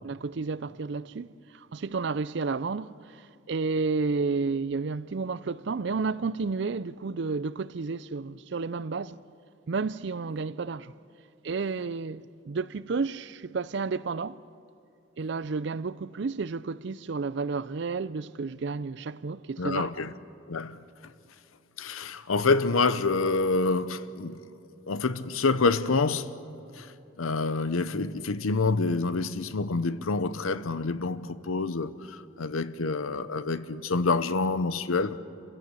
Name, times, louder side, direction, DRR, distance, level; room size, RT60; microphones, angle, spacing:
voice 1, 0.0-9.2 9.7-10.9 11.4-14.4 15.2-20.0, right 4 dB, 55° right, 0.4 m, -31 dB
voice 2, 19.6-20.1 20.5-20.8 21.8-24.4 24.9-26.3 26.8-26.9 27.2-35.2, left 3 dB, 85° left, 0.8 m, -27 dB
28.0 x 15.5 x 8.3 m
head